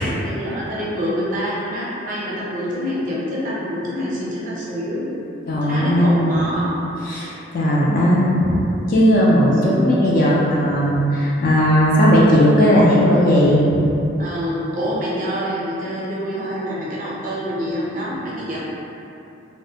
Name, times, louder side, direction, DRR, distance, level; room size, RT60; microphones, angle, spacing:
voice 1, 0.0-5.1 5.6-6.8 9.6-10.0 14.2-18.6, equal, 40° right, -7 dB, 0.5 m, -26 dB
voice 2, 5.5-6.3 7.0-8.6 8.9-13.6, equal, 45° left, -6 dB, 0.3 m, -16 dB
2.4 x 2.1 x 2.7 m, 2.8 s
head